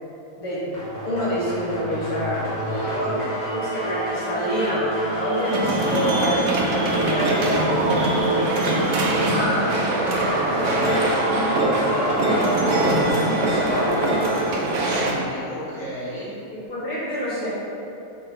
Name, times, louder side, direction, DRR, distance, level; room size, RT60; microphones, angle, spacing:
voice 1, 0.4-7.6 9.1-9.7 10.5-14.1 16.5-17.5, equal, 80° left, -9 dB, 1.8 m, -28 dB
sound 1, 0.7-14.4, right 1 dB, 35° left, 1.0 m, -28 dB
voice 2, 2.7-3.3 10.6-11.0 11.3-12.0 14.8-16.3, equal, 60° left, -8 dB, 1.5 m, -35 dB
sound 2, 2.7-2.8 3.1-9.5, right 1 dB, 85° right, 1.6 m, -40 dB
sound 3, 5.5-15.1, right 1 dB, 65° right, 0.8 m, -23 dB
6.0 x 2.3 x 3.4 m, 2.9 s
omnidirectional pair, 1.6 m